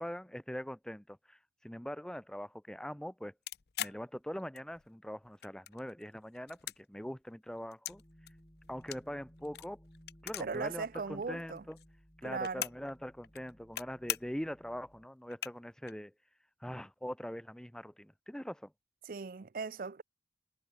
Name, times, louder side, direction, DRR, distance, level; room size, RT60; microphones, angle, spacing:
voice 1, 0.0-3.3 3.8-8.0 8.7-9.8 10.2-11.8 12.2-16.1 16.6-18.7, equal, 5° left, 0.6 m, -42 dB
sound 1, 3.5-4.9 5.2-6.0 6.3-8.0 8.3-10.7 10.9-11.0 11.2-12.9 13.2-13.8 14.1-14.5 14.9-15.0 15.3-15.9, left 12 dB, 65° left, 0.7 m, -41 dB
sound 2, 7.9-15.0, equal, 25° left, 7.9 m, -60 dB
voice 2, 10.4-11.6 12.2-12.6 19.0-20.0, right 4 dB, 50° right, 0.5 m, -38 dB
head